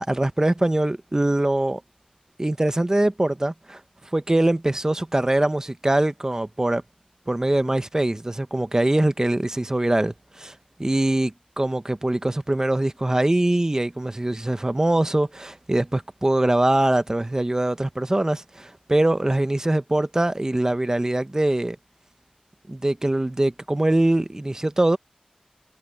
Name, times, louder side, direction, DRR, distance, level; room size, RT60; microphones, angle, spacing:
voice 1, 0.0-1.8 2.4-3.8 4.1-6.8 7.3-10.5 10.8-21.8 22.7-25.0, right 1 dB, 25° right, 1.1 m, -23 dB
wide cardioid pair, 75°, 2 cm